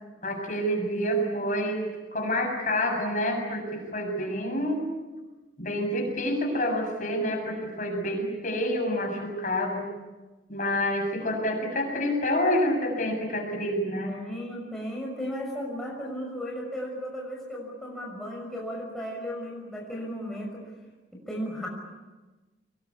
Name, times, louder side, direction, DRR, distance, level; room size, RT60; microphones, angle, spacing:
voice 1, 0.2-4.8 5.6-9.9 10.5-14.1, equal, 45° left, 2 dB, 7.3 m, -28 dB
voice 2, 14.1-20.6 21.1-21.7, equal, ahead, -3 dB, 6.1 m, -35 dB
25.0 x 21.5 x 9.9 m, 1.2 s
head